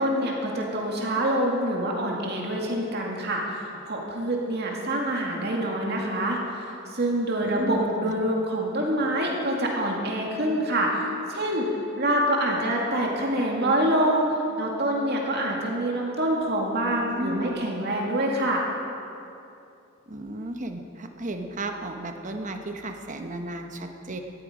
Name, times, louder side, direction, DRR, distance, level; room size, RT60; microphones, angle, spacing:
voice 1, 0.0-11.7 12.0-18.7, right 1 dB, 55° right, -1 dB, 2.2 m, -26 dB
voice 2, 7.4-8.2 17.1-17.7 20.1-24.2, right 1 dB, 40° right, 5 dB, 1.1 m, -34 dB
18.0 x 14.0 x 5.0 m, 2.7 s
head